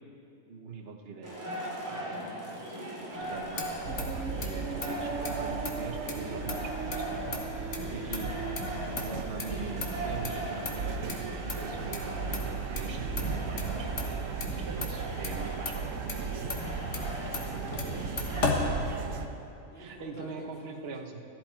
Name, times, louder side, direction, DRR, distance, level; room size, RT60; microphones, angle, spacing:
voice 1, 0.5-2.7 3.0-3.7 4.0-7.2 7.9-8.3 9.0-11.1 11.4-13.9 14.6-15.9 17.4-17.8 19.0-19.1 19.8-21.2, right 4 dB, 50° right, 3 dB, 1.1 m, -43 dB
sound 1, 1.2-18.6, equal, 15° right, 2.8 m, -40 dB
Motor vehicle (road), 3.2-19.4, left 3 dB, 65° left, 1.7 m, -38 dB
sound 2, 3.8-19.3, right 5 dB, 80° right, 1.1 m, -36 dB
voice 2, 16.9-17.8 19.7-20.3 20.6-20.8, right 1 dB, 10° left, -7 dB, 3.8 m, -51 dB
15.0 x 13.5 x 4.5 m, 2.8 s
omnidirectional pair, 1.4 m